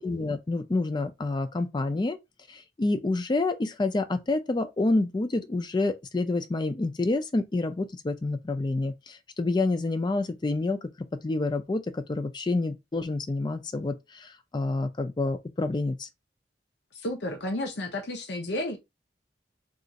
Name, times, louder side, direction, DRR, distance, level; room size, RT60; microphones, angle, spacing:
voice 1, 0.0-2.2 2.5-10.8 11.2-16.1, left 2 dB, 25° left, 0.4 m, -28 dB
voice 2, 17.0-18.8, left 1 dB, 65° left, 0.7 m, -31 dB
2.4 x 2.4 x 3.9 m
head